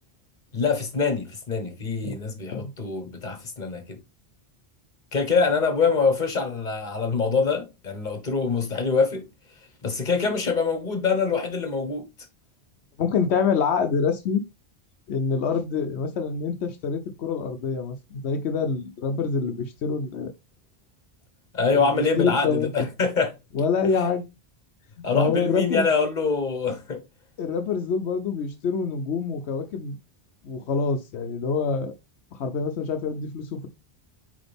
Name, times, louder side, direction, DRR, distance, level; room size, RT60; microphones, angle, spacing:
voice 1, 0.5-4.0 5.1-9.2 9.8-12.0 21.5-23.3 25.0-27.0, left 4 dB, 45° left, 1.5 m, -24 dB
voice 2, 13.0-14.4 15.1-20.3 21.7-22.7 23.5-24.2 25.1-25.9 27.4-30.0 30.4-31.9 32.4-33.7, left 5 dB, 85° left, 1.0 m, -26 dB
7.9 x 3.4 x 3.4 m
omnidirectional pair, 1.1 m